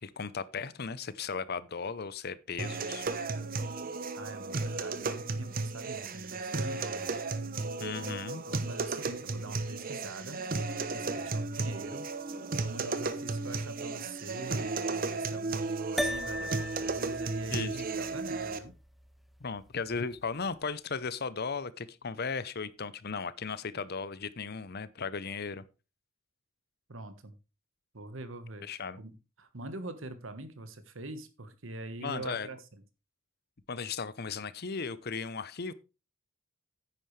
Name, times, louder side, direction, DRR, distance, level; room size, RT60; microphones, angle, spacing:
voice 1, 0.0-3.1 7.8-8.4 17.5-17.8 19.4-25.6 28.6-29.0 32.0-32.5 33.7-35.7, left 5 dB, 50° left, 0.8 m, -36 dB
sound 1, 2.6-18.6, right 3 dB, 45° right, 1.0 m, -34 dB
voice 2, 4.1-7.1 8.0-8.2 8.5-10.4 10.9-12.1 12.5-18.7 26.9-27.3 27.9-28.7 29.0-32.6, right 2 dB, 75° right, 1.4 m, -43 dB
sound 2, 16.0-20.5, left 1 dB, ahead, 0.5 m, -39 dB
10.0 x 9.3 x 3.3 m
head